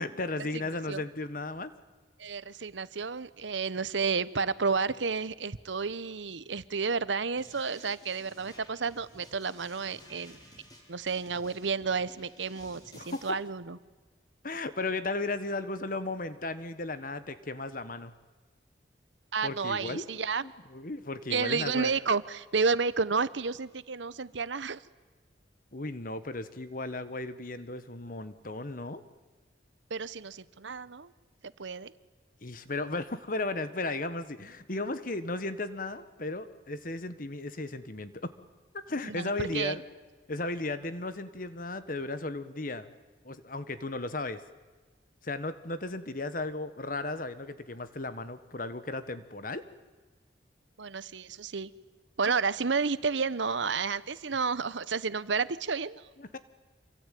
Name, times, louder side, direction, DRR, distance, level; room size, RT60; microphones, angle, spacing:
voice 1, 0.0-1.7 12.9-13.4 14.4-18.1 19.4-20.0 20.4-22.0 25.7-29.0 32.4-38.3 38.7-39.8 40.3-42.9 43.2-44.4 45.2-49.6 56.2-56.4, left 2 dB, 50° left, 12 dB, 1.4 m, -35 dB
voice 2, 2.2-10.4 10.9-13.8 19.3-20.4 21.3-24.8 29.9-31.1 31.6-31.9 39.0-39.7 50.8-51.7 52.2-56.0, right 5 dB, 85° right, 16 dB, 0.9 m, -31 dB
sound 1, 7.4-13.3, left 1 dB, 20° left, 4.8 m, -55 dB
26.5 x 24.0 x 9.3 m, 1.3 s
head